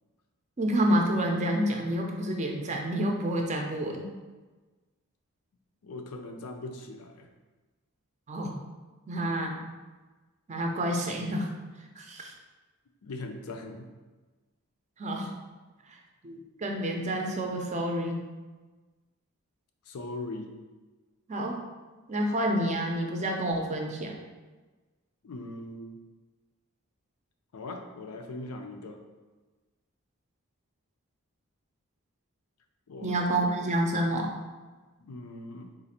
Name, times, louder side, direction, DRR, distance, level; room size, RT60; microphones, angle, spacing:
voice 1, 0.6-4.1 8.3-8.6 9.1-9.6 10.5-11.5 12.0-12.3 15.0-15.3 15.9-16.0 16.2-18.2 21.3-21.6 22.1-24.1 33.0-34.3, right 1 dB, 30° right, 1 dB, 0.5 m, -28 dB
voice 2, 5.8-7.3 13.0-13.9 19.9-20.5 25.2-26.0 27.5-29.0 32.9-33.3 35.0-35.7, left 2 dB, 85° left, 4 dB, 0.5 m, -40 dB
3.9 x 2.5 x 4.2 m, 1.3 s
head